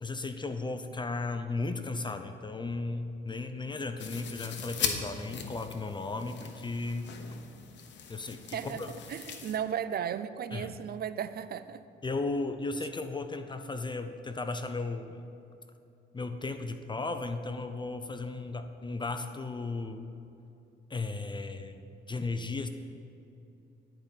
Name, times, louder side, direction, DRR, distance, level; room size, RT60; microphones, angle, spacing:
voice 1, 0.0-7.1 8.1-8.9 10.5-10.8 12.0-15.2 16.1-20.1 20.9-22.7, left 3 dB, 25° left, 8 dB, 0.7 m, -35 dB
sound 1, 4.0-9.6, left 6 dB, 65° left, 1.1 m, -39 dB
voice 2, 8.5-8.8 9.1-11.8, right 8 dB, 50° right, 13 dB, 0.5 m, -35 dB
10.5 x 5.3 x 8.4 m, 2.7 s
cardioid pair, 90°, 20 cm